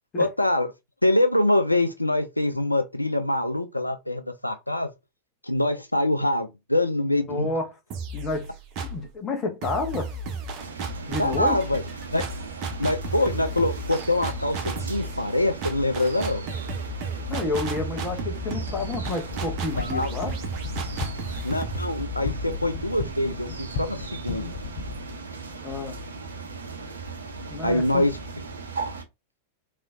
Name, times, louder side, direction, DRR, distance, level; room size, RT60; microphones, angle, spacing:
voice 1, 0.2-0.7 1.0-4.9 5.4-7.5 11.2-11.8 12.1-12.2 12.8-16.4 19.8-20.1 21.4-24.6 27.6-28.2, left 1 dB, 85° left, 0.4 m, -24 dB
voice 2, 7.1-7.7 8.1-8.5 8.9-10.1 11.1-11.6 17.3-20.3 25.6-26.0 27.5-28.1, left 3 dB, 25° left, 1.4 m, -30 dB
sound 1, 7.9-9.1 9.6-23.3, right 2 dB, 40° right, 1.0 m, -34 dB
sound 2, 10.6-29.0, right 3 dB, 70° right, 0.7 m, -38 dB
sound 3, 18.6-25.0, left 4 dB, 55° left, 0.7 m, -36 dB
3.7 x 3.1 x 2.6 m
figure-of-eight pair, 90°, 0 cm